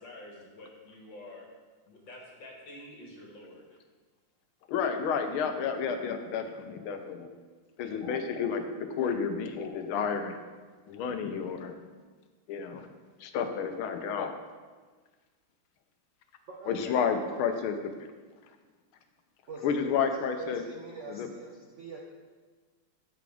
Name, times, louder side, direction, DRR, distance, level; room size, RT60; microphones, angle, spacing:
voice 1, 0.0-1.5 1.9-3.8 16.8-17.0, left 1 dB, 60° left, -1 dB, 2.1 m, -48 dB
voice 2, 4.7-7.3 7.8-10.4 10.9-11.8 12.5-12.9 13.2-14.4 16.7-17.8 19.6-20.6 21.1-21.3, left 6 dB, 75° left, 7 dB, 1.5 m, -31 dB
voice 3, 17.1-17.6 19.5-22.0, right 3 dB, 90° right, -2 dB, 0.6 m, -45 dB
12.5 x 4.9 x 3.5 m, 1.4 s
omnidirectional pair, 2.4 m